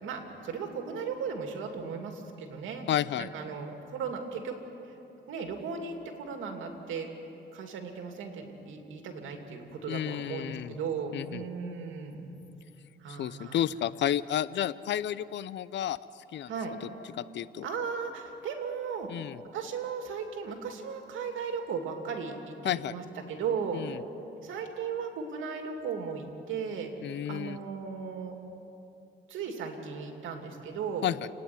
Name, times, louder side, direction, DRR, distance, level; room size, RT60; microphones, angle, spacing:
voice 1, 0.0-2.8 3.2-4.5 4.8-4.9 5.3-7.1 7.5-12.3 13.0-13.6 16.5-16.7 17.6-19.1 19.5-23.0 23.3-24.0 24.4-28.4 29.3-31.1, right 5 dB, 80° right, 4 dB, 2.7 m, -36 dB
voice 2, 2.9-3.3 9.9-10.8 11.1-11.4 13.1-16.5 16.8-16.9 17.2-17.7 19.1-19.4 22.6-22.9 23.7-24.0 27.0-27.6 31.0-31.3, left 11 dB, 65° left, 17 dB, 0.6 m, -31 dB
29.0 x 9.8 x 9.5 m, 2.9 s
cardioid pair, 90°, 20 cm